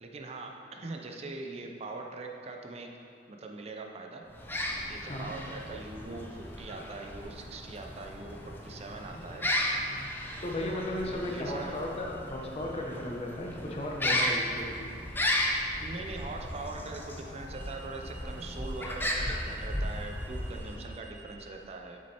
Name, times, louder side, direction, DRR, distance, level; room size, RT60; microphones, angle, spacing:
voice 1, 0.0-3.0 3.3-4.2 4.9-9.5 11.1-11.8 15.8-22.0, right 3 dB, 35° right, 2 dB, 0.5 m, -42 dB
sound 1, 4.3-21.1, left 1 dB, 10° left, 0.5 m, -35 dB
voice 2, 10.4-14.9, left 1 dB, 35° left, -1 dB, 0.8 m, -35 dB
sound 2, 16.3-21.3, equal, 85° right, 1.4 m, -54 dB
7.4 x 6.2 x 2.9 m, 2.4 s
head